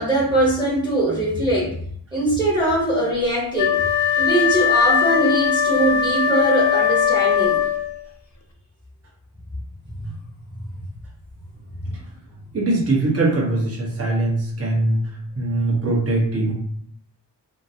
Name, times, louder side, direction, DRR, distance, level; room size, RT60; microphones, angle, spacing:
voice 1, 0.0-1.8 2.1-3.8 4.2-7.6 9.9-10.1, right 1 dB, 10° right, -6 dB, 1.0 m, -21 dB
Wind instrument woodwind instrument, 3.5-8.0, left 8 dB, 45° left, 0.5 m, -20 dB
voice 2, 12.5-15.0 15.4-16.5, right 2 dB, 35° right, -4 dB, 1.0 m, -21 dB
2.8 x 2.5 x 2.7 m, 0.64 s
cardioid pair, 80°, 43 cm